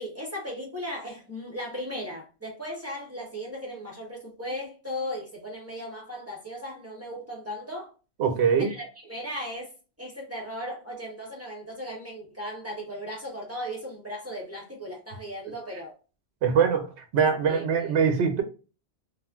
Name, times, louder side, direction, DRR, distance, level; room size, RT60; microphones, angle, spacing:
voice 1, 0.0-7.9 8.6-9.7 10.0-15.9 17.4-17.9, equal, 15° right, 0.7 m, -37 dB
voice 2, 8.2-8.7 16.4-16.9 17.1-18.4, right 6 dB, 70° right, 0.9 m, -22 dB
2.4 x 2.1 x 3.4 m
omnidirectional pair, 1.2 m